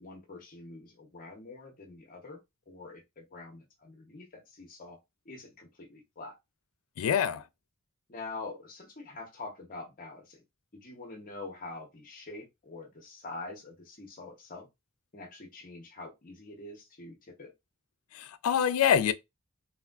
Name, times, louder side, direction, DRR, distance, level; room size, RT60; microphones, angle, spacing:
voice 1, 0.0-2.4 2.7-5.0 5.3-6.4 8.1-10.4 10.7-14.7 15.1-17.5, left 3 dB, 40° left, 0.7 m, -45 dB
voice 2, 7.0-7.4 18.1-19.1, left 8 dB, 75° left, 0.3 m, -25 dB
3.4 x 2.5 x 2.2 m
head